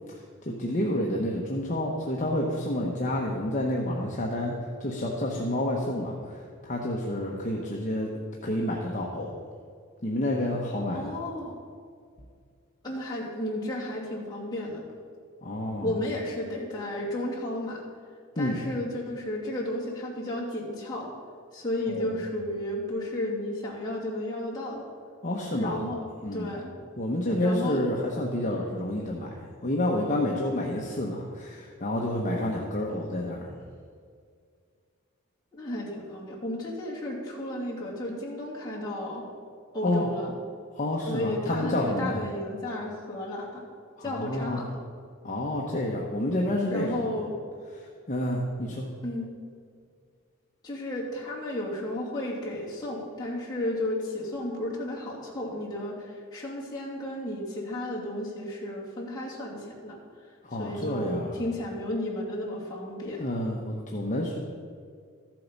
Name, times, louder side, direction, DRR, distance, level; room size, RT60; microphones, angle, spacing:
voice 1, 0.5-4.5 4.8-8.1 8.4-9.4 10.0-11.2 15.4-15.9 18.4-18.6 21.9-22.1 25.2-25.8 26.2-26.5 27.0-33.6 39.8-40.1 40.7-42.3 44.0-44.6 45.2-47.0 47.8-48.9 60.4-61.4 63.2-64.4, left 1 dB, 35° left, -2 dB, 1.0 m, -29 dB
voice 2, 10.9-11.5 12.8-14.8 15.8-17.8 18.3-21.1 21.5-24.8 25.6-26.0 26.3-26.7 27.4-27.9 35.5-39.2 39.7-40.3 41.1-43.7 44.0-44.6 46.7-47.3 49.0-49.3 50.6-60.0 60.6-63.2, left 1 dB, 20° left, -6 dB, 2.5 m, -33 dB
14.0 x 7.6 x 5.3 m, 2.2 s
head